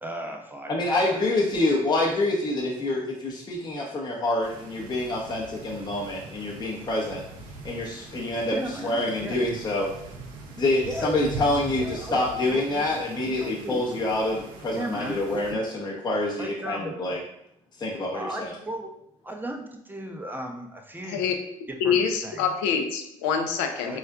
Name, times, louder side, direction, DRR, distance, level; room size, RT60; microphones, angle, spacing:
voice 1, 0.0-0.8 1.1-1.2 8.5-9.6 10.9-11.4 11.8-12.9 13.2-13.9 14.7-15.7 16.4-17.0 18.1-18.9 19.2-21.2 21.7-22.4 23.9-24.0, right 1 dB, 10° right, 3 dB, 0.5 m, -36 dB
voice 2, 0.7-7.2 7.6-8.5 8.8-9.9 10.6-17.2 17.8-18.5, left 2 dB, 25° left, -3 dB, 0.7 m, -26 dB
sound 1, 4.4-15.5, right 3 dB, 65° right, 0.5 m, -42 dB
voice 3, 21.0-21.3 21.8-24.0, left 6 dB, 75° left, 5 dB, 0.5 m, -25 dB
4.2 x 2.4 x 2.2 m, 0.76 s
hypercardioid pair, 55°, 16 cm